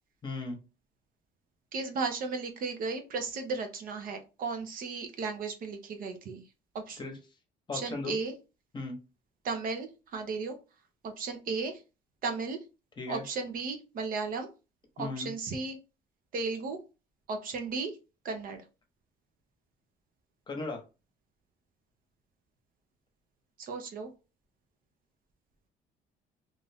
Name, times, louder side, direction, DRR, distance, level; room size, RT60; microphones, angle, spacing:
voice 1, 0.2-0.6 7.0-7.1 7.7-8.1 8.7-9.0 13.0-13.2 15.0-15.3 20.5-20.8, left 3 dB, 25° left, 3 dB, 0.9 m, -36 dB
voice 2, 1.7-6.4 6.7-7.0 7.7-8.3 9.4-10.6 11.0-11.8 12.2-12.6 13.1-14.5 15.0-15.8 16.3-16.8 17.3-18.0 18.2-18.6 23.6-24.1, right 4 dB, 55° right, 5 dB, 0.7 m, -35 dB
2.5 x 2.5 x 3.3 m, 0.30 s
cardioid pair, 110°, 17 cm